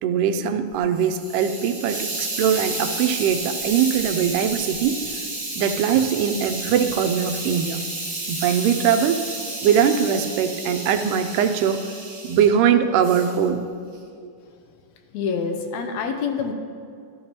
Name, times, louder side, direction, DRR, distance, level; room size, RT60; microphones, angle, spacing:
voice 1, 0.0-5.2 5.6-7.8 8.3-9.3 9.6-11.8 12.2-13.7, right 8 dB, 85° right, 7 dB, 2.2 m, -21 dB
Hiss, 0.7-12.5 13.0-13.4, right 2 dB, 25° right, 1.7 m, -31 dB
voice 2, 15.1-16.5, left 5 dB, 75° left, 5 dB, 1.7 m, -26 dB
14.0 x 12.0 x 2.9 m, 2.3 s
omnidirectional pair, 3.8 m